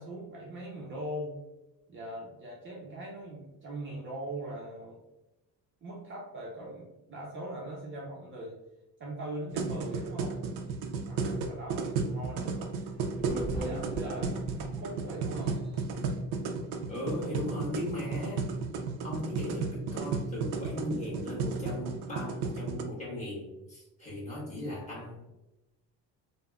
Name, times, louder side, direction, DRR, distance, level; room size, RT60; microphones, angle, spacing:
voice 1, 0.0-1.3 1.9-5.0 5.8-8.6 9.0-10.4 11.0-12.6 13.4-15.6, right 1 dB, 35° right, -3 dB, 0.5 m, -41 dB
sound 1, 9.5-22.8, right 4 dB, 90° right, 0.5 m, -34 dB
sound 2, 12.6-12.7 13.1-14.8 15.3-15.8, equal, 40° left, 1.3 m, -38 dB
voice 2, 16.9-18.5 19.0-25.3, left 1 dB, 20° left, -7 dB, 1.3 m, -37 dB
3.2 x 2.1 x 2.3 m, 0.99 s
cardioid pair, 125°, 37 cm